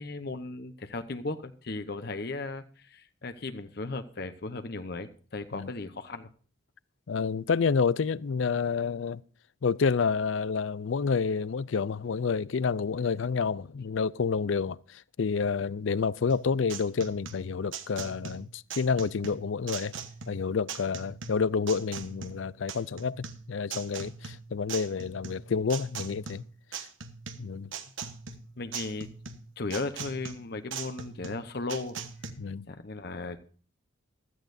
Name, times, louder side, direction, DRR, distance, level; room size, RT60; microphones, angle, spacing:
voice 1, 0.0-6.3 28.6-29.1 29.6-32.0 32.7-33.4, left 3 dB, 50° left, 0.9 m, -36 dB
voice 2, 7.1-9.2 9.6-19.9 20.3-26.4 27.4-27.7 32.4-32.7, left 5 dB, 70° left, 0.5 m, -29 dB
sound 1, 16.3-32.3, right 6 dB, 75° right, 1.3 m, -41 dB
15.5 x 13.5 x 2.6 m
head